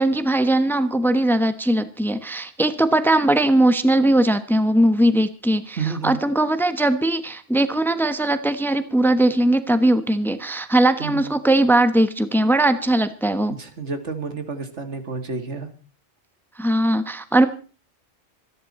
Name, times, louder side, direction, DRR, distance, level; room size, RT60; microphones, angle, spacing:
voice 1, 0.0-13.5 16.6-17.5, right 1 dB, ahead, 11 dB, 1.0 m, -19 dB
voice 2, 5.8-6.2 11.0-11.3 13.5-15.7, right 5 dB, 80° right, 8 dB, 2.3 m, -30 dB
26.0 x 10.5 x 4.2 m, 0.37 s
omnidirectional pair, 1.2 m